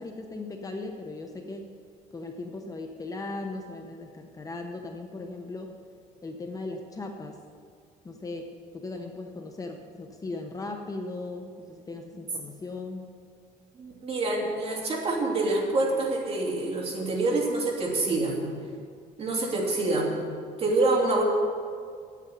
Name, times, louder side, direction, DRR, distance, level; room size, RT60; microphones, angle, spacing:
voice 1, 0.0-1.7 2.1-5.7 6.2-7.4 8.0-13.1, left 2 dB, 25° left, 3 dB, 0.9 m, -38 dB
voice 2, 13.8-18.5 19.2-20.2 20.6-21.2, right 2 dB, 40° right, -2 dB, 2.8 m, -26 dB
8.6 x 8.4 x 9.3 m, 2.1 s
cardioid pair, 135°, 15 cm